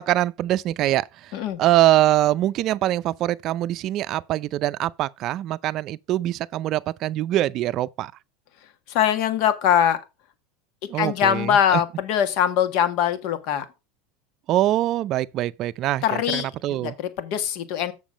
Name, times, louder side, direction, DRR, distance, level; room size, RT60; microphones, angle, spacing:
voice 1, 0.0-8.1 10.9-11.8 14.5-16.9, right 14 dB, 45° right, 0.4 m, -23 dB
voice 2, 8.9-10.0 10.9-13.6 16.0-17.9, left 9 dB, 60° left, 1.5 m, -22 dB
7.2 x 6.1 x 5.0 m
supercardioid pair, 115°, 0 cm